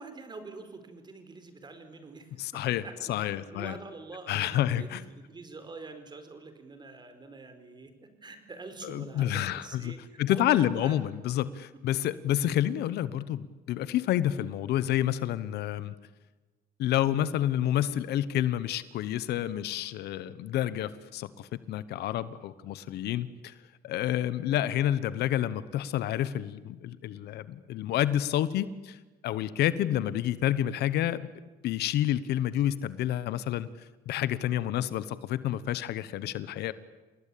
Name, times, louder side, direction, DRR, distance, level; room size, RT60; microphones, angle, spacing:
voice 1, 0.0-11.1 11.7-11.8 12.3-12.5 30.0-30.1 36.4-36.6, right 3 dB, 25° right, 8 dB, 4.7 m, -46 dB
voice 2, 2.4-3.8 4.3-5.0 8.8-15.9 16.8-23.5 23.8-29.0 29.2-31.3 31.6-33.7 34.1-36.7, left 12 dB, 75° left, 16 dB, 1.2 m, -29 dB
28.5 x 20.0 x 8.7 m, 1.2 s
cardioid pair, 110°, 17 cm